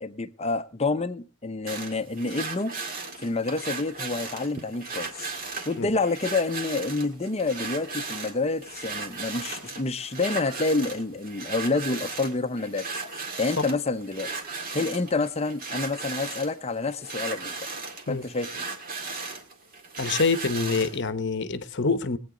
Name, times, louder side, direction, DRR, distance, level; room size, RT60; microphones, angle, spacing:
voice 1, 0.0-2.7 3.2-5.3 5.7-12.9 13.4-14.3 14.7-17.5 18.1-18.6, left 3 dB, 30° left, 0.7 m, -28 dB
sound 1, 1.7-21.0, right 4 dB, 40° right, 2.0 m, -36 dB
voice 2, 20.0-22.2, left 4 dB, 50° left, 0.9 m, -26 dB
21.0 x 8.8 x 3.8 m
head